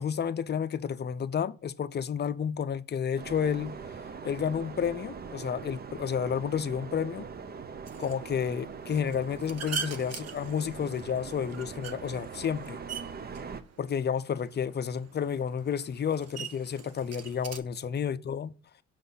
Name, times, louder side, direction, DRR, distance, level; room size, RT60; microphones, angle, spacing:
voice 1, 0.0-3.8 4.2-7.3 8.0-12.8 13.8-18.5, left 7 dB, 35° left, 0.6 m, -31 dB
sound 1, 3.1-13.6, right 5 dB, 30° right, 0.7 m, -42 dB
sound 2, 7.9-17.6, right 6 dB, 55° right, 0.9 m, -43 dB
6.6 x 3.9 x 5.5 m
cardioid pair, 90°, 30 cm